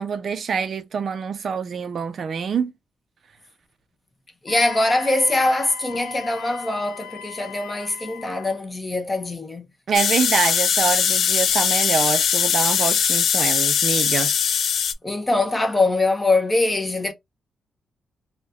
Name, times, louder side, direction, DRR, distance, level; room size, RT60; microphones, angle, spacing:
voice 1, 0.0-2.7 9.9-14.3, right 6 dB, 45° right, 0.4 m, -25 dB
voice 2, 4.4-9.7 15.0-17.1, left 2 dB, 15° left, 0.6 m, -22 dB
Wind instrument woodwind instrument, 4.5-8.6, left 9 dB, 85° left, 1.0 m, -39 dB
sound 1, 9.9-14.9, left 8 dB, 60° left, 0.3 m, -20 dB
4.0 x 2.2 x 2.3 m
wide cardioid pair, 170°, 0 cm